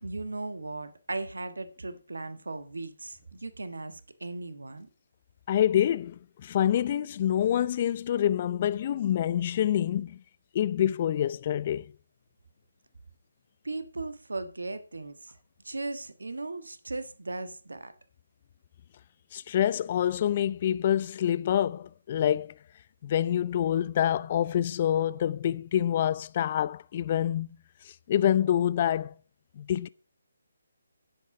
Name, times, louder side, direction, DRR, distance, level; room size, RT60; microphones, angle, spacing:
voice 1, 0.0-4.9 13.6-15.3 15.6-17.9, right 2 dB, 80° right, 1.4 m, -37 dB
voice 2, 5.5-10.2 10.5-11.8 19.3-22.5 23.0-27.5 28.1-29.1 29.6-29.9, left 10 dB, 35° left, 0.5 m, -26 dB
10.5 x 8.0 x 4.8 m
figure-of-eight pair, 150°, 0 cm